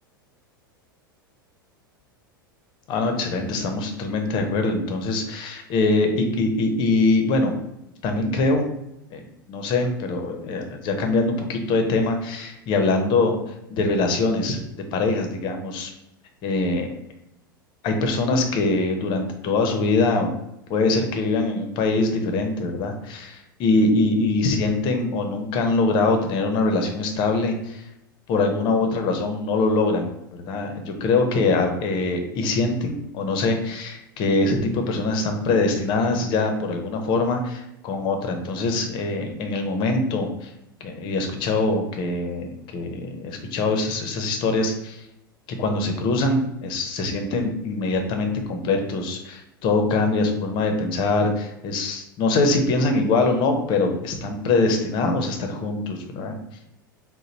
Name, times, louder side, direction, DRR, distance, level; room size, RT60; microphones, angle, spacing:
voice 1, 2.9-7.5 8.0-8.7 9.1-9.2 9.5-13.4 13.7-14.6 14.9-15.9 16.4-16.9 17.8-20.4 20.7-27.8 28.3-40.5 40.8-45.0 45.6-56.3, left 3 dB, 45° left, 5 dB, 0.8 m, -23 dB
3.8 x 2.2 x 4.3 m, 0.83 s
figure-of-eight pair, 85°, 12 cm